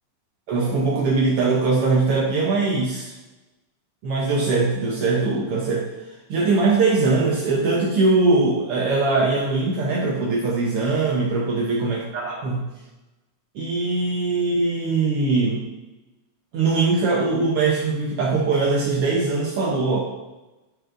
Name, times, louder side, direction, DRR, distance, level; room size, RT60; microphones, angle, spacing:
voice 1, 0.5-3.1 4.0-5.9 6.3-12.6 13.5-15.6 16.5-20.0, right 3 dB, 75° right, -3 dB, 1.3 m, -21 dB
9.8 x 4.6 x 2.6 m, 1.0 s
omnidirectional pair, 3.7 m